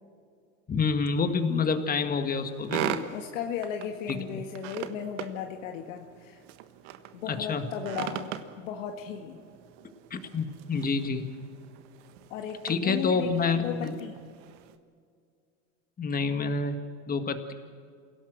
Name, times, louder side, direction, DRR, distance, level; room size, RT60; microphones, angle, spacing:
voice 1, 0.7-2.9 4.1-4.4 7.3-7.6 10.1-11.2 12.6-13.9 16.0-16.8 17.1-17.5, left 4 dB, 20° left, 8 dB, 1.9 m, -28 dB
sound 1, 1.0-14.8, right 10 dB, 65° right, 1.5 m, -41 dB
voice 2, 2.8-6.4 7.1-9.4 12.3-14.2, left 8 dB, 70° left, 3 dB, 1.8 m, -36 dB
27.5 x 17.5 x 6.5 m, 2.2 s
supercardioid pair, 115°, 40 cm